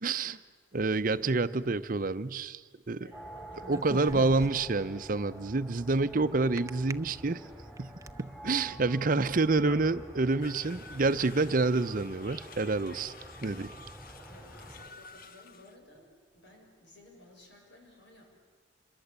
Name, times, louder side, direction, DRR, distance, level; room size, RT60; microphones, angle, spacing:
voice 1, 0.0-0.4 0.7-2.6 2.9-3.0 3.7-7.4 7.8-7.9 8.2-13.1 13.4-13.7, right 3 dB, 50° right, 12 dB, 0.7 m, -28 dB
voice 2, 1.1-1.5 3.0-3.8 10.3-10.6 14.3-16.1 16.3-18.2, left 1 dB, 70° left, 1 dB, 7.0 m, -57 dB
sound 1, 3.1-14.8, right 1 dB, 10° left, 3.9 m, -48 dB
sound 2, 3.6-4.9 6.6-6.9 7.5-8.2, right 1 dB, 15° right, 0.7 m, -40 dB
sound 3, 10.4-15.8, left 3 dB, 50° left, 1.2 m, -50 dB
27.0 x 22.0 x 8.2 m, 1.5 s
head